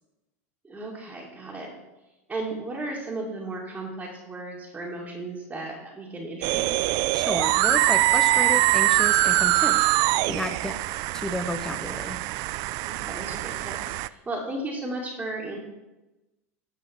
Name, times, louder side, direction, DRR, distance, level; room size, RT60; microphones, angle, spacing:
voice 1, 0.6-1.7 2.3-6.9 12.8-15.6, right 2 dB, 15° right, -4 dB, 2.4 m, -35 dB
sound 1, 6.4-14.1, right 17 dB, 50° right, 0.4 m, -23 dB
voice 2, 7.1-10.8 11.1-12.2, left 1 dB, 10° left, 8 dB, 1.0 m, -32 dB
12.0 x 7.0 x 4.5 m, 1.0 s
hypercardioid pair, 100°, 8 cm